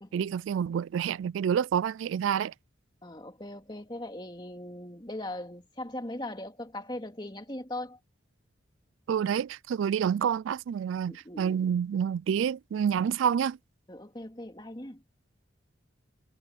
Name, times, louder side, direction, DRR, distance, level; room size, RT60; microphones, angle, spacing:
voice 1, 0.1-2.5 9.1-13.6, right 8 dB, 80° right, 0.3 m, -28 dB
voice 2, 3.0-8.0 11.1-11.6 13.9-15.0, left 1 dB, 20° left, 2.6 m, -39 dB
head